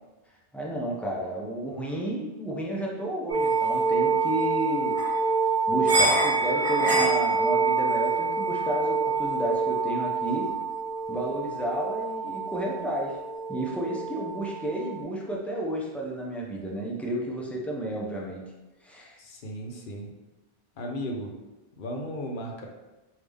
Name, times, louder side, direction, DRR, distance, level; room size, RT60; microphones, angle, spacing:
voice 1, 0.5-5.0 5.7-10.5 11.1-13.2 13.5-18.4 18.8-19.2, right 1 dB, ahead, -3 dB, 0.3 m, -31 dB
sound 1, 3.3-15.0, right 4 dB, 35° right, 0.7 m, -26 dB
voice 2, 19.2-20.1 20.8-21.3 21.8-22.7, equal, 55° left, 1 dB, 0.7 m, -35 dB
3.5 x 2.7 x 3.4 m, 1.1 s
omnidirectional pair, 1.1 m